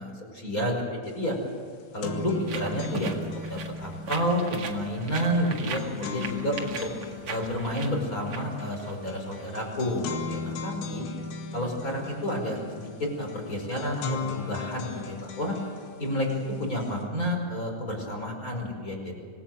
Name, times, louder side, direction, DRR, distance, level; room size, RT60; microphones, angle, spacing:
voice 1, 0.0-1.3 1.9-6.7 7.3-11.1 11.5-12.6 13.0-15.5 16.0-16.3 16.6-19.1, equal, 15° left, 2 dB, 4.9 m, -30 dB
sound 1, 1.1-1.2 1.5-17.0, left 4 dB, 75° left, 4.4 m, -38 dB
sound 2, 2.5-9.4, right 5 dB, 90° right, 1.2 m, -40 dB
26.0 x 19.0 x 7.7 m, 2.2 s
omnidirectional pair, 5.8 m